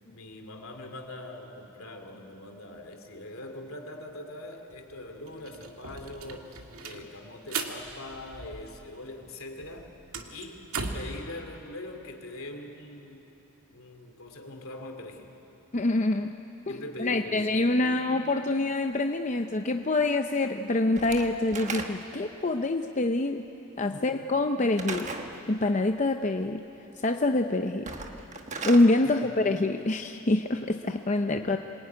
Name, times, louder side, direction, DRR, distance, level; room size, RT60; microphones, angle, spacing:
voice 1, 0.1-9.9 10.3-13.3 13.7-15.3 16.7-18.3 23.9-24.1 29.0-29.3, left 1 dB, 75° left, 4 dB, 2.8 m, -42 dB
sound 1, 4.7-4.8 5.1-9.0 9.3-11.2, right 4 dB, 80° right, 2.0 m, -38 dB
voice 2, 15.7-16.3 17.0-23.5 23.8-25.1 25.5-26.6 27.0-27.9 28.6-31.6, left 2 dB, 35° left, 5 dB, 0.7 m, -25 dB
Slam / Wood, 21.0-22.3 24.8-25.3 27.7-28.9, right 4 dB, 35° right, 1.5 m, -36 dB
26.5 x 21.0 x 9.5 m, 3.0 s
head